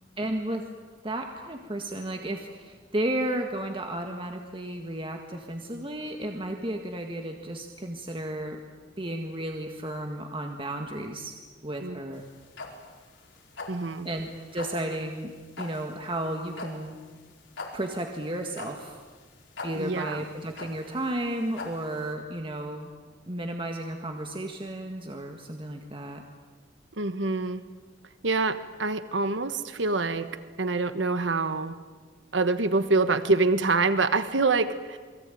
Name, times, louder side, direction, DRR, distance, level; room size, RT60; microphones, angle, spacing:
voice 1, 0.2-0.7 1.0-8.6 9.0-11.4 11.6-12.2 14.0-15.3 15.6-17.0 17.7-19.0 19.6-22.9 23.3-26.2, right 1 dB, 30° right, 3 dB, 1.8 m, -33 dB
Alarm clock without noisereduktiom, 12.1-22.1, left 3 dB, 90° left, 5.1 m, -42 dB
voice 2, 13.7-14.1 19.7-20.2 26.9-27.6 28.2-30.3 30.6-31.8 32.3-35.0, right 3 dB, 90° right, 11 dB, 1.3 m, -26 dB
28.5 x 22.0 x 9.2 m, 1.4 s
head